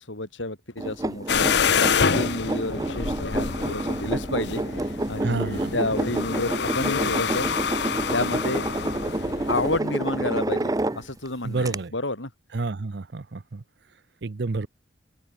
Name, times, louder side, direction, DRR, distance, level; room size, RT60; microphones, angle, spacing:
voice 1, 0.0-7.5 8.1-8.7 9.5-12.3, left 2 dB, 80° left, 4.4 m, -30 dB
sound 1, 0.8-11.3 11.7-11.8, right 2 dB, 20° right, 0.5 m, -29 dB
sound 2, 1.3-9.8, left 6 dB, 60° left, 0.7 m, -27 dB
voice 2, 5.2-5.7 11.4-11.9 12.5-13.6 14.2-14.7, right 3 dB, 60° right, 0.6 m, -29 dB
open air
head